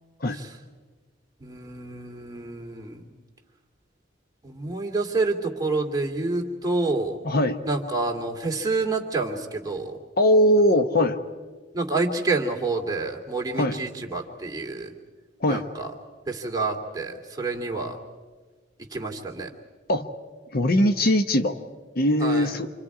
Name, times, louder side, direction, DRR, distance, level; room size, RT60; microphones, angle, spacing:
voice 1, 1.4-3.0 4.4-7.2 7.7-10.0 11.7-14.9 15.5-15.9 16.3-18.0 18.9-19.5 22.2-22.5, right 3 dB, 20° right, 0 dB, 2.5 m, -28 dB
voice 2, 7.2-7.6 10.2-11.2 13.5-13.8 15.4-15.7 19.9-20.1 20.5-21.6 21.9-22.7, left 1 dB, 55° left, 9 dB, 0.9 m, -21 dB
28.0 x 26.0 x 4.9 m, 1.4 s
head